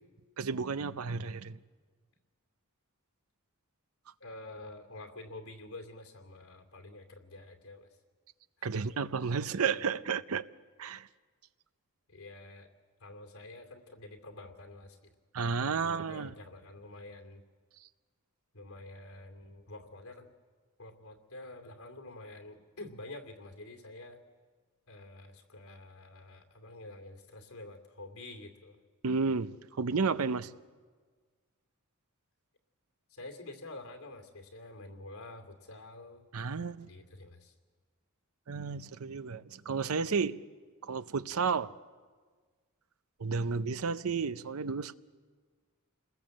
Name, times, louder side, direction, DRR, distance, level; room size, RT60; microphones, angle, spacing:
voice 1, 0.4-1.6 8.6-10.5 10.8-11.1 15.3-16.3 29.0-30.5 36.3-36.9 38.5-40.4 40.8-41.7 43.2-44.9, right 5 dB, 70° right, 0.6 m, -32 dB
voice 2, 4.2-8.0 8.6-9.0 12.1-12.7 13.0-15.1 15.8-17.4 18.5-20.3 20.8-24.2 24.9-28.8 33.1-36.2 36.8-37.5, left 2 dB, 85° left, 2.6 m, -48 dB
28.0 x 20.0 x 7.7 m
head